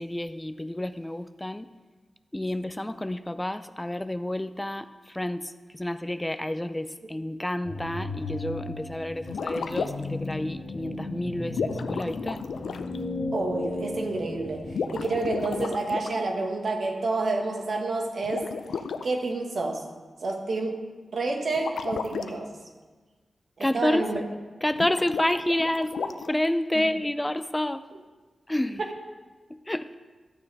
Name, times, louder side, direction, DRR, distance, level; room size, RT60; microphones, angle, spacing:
voice 1, 0.0-1.7 2.3-12.4 23.6-24.2 24.6-27.8 28.5-28.8 29.5-30.0, left 1 dB, 15° left, 12 dB, 0.4 m, -29 dB
sound 1, 7.6-15.1, left 2 dB, 60° left, 1.2 m, -35 dB
sound 2, 9.2-10.2 11.5-13.0 14.6-16.2 18.2-19.0 21.6-22.3 24.7-26.5, left 5 dB, 90° left, 0.4 m, -33 dB
voice 2, 13.3-18.5 19.0-19.8 20.2-20.8 21.1-22.5 23.6-24.2 26.7-26.9, right 3 dB, 70° right, 1 dB, 1.5 m, -29 dB
13.0 x 6.7 x 4.1 m, 1.3 s
cardioid pair, 50°, 0 cm